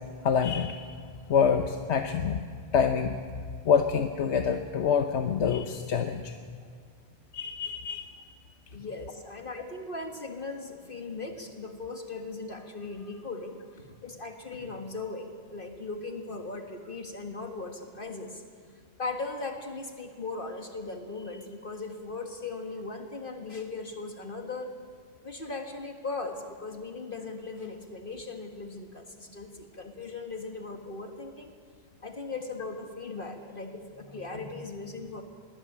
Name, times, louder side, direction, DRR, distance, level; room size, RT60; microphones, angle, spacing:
voice 1, 0.2-0.9 1.3-2.5 2.7-3.2 3.6-6.3 7.3-8.1, left 7 dB, 85° left, 6 dB, 1.2 m, -26 dB
voice 2, 8.7-18.4 19.0-24.7 25.2-31.5 32.0-35.2, left 3 dB, 55° left, 4 dB, 1.8 m, -38 dB
22.0 x 18.0 x 8.6 m, 2.1 s
omnidirectional pair, 1.1 m